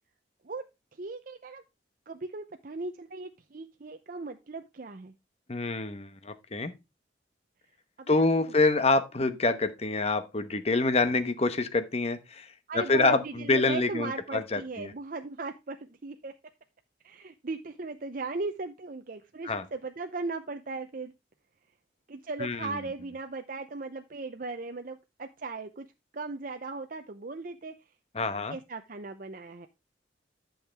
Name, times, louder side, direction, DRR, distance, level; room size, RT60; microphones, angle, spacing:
voice 1, 1.0-1.6 2.1-5.1 8.0-8.3 12.7-16.3 17.0-21.1 22.1-25.9 26.1-27.7 28.5-29.7, right 3 dB, 50° right, 0.7 m, -37 dB
voice 2, 5.5-6.7 8.1-12.5 12.7-14.9 19.4-19.6 22.4-22.8 28.1-28.6, left 3 dB, 35° left, 1.0 m, -26 dB
11.0 x 6.5 x 3.5 m
head